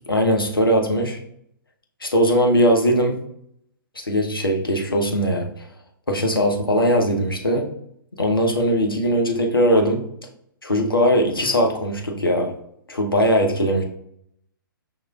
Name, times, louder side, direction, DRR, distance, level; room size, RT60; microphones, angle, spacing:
voice 1, 0.1-1.2 2.0-3.2 4.1-5.5 6.1-7.7 8.2-10.0 10.6-12.5 12.9-13.8, equal, 80° left, 1 dB, 0.9 m, -20 dB
5.5 x 3.1 x 2.4 m, 0.73 s
figure-of-eight pair, 120°, 12 cm